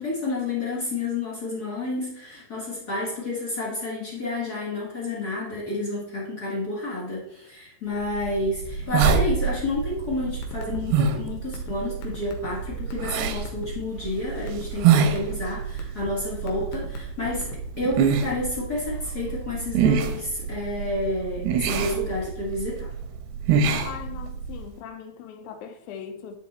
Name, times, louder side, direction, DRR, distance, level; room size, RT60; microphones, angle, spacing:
voice 1, 0.0-22.9, left 2 dB, 45° left, 1.2 m, -30 dB
sound 1, 8.0-24.6, right 6 dB, 85° right, 2.8 m, -26 dB
sound 2, 10.3-10.8 11.1-13.7 14.2-14.6 14.9-15.3 15.8-16.1 16.5-17.8, left 10 dB, 70° left, 2.8 m, -42 dB
voice 2, 23.8-26.4, left 8 dB, 85° left, 1.7 m, -39 dB
10.0 x 5.0 x 4.2 m
omnidirectional pair, 4.4 m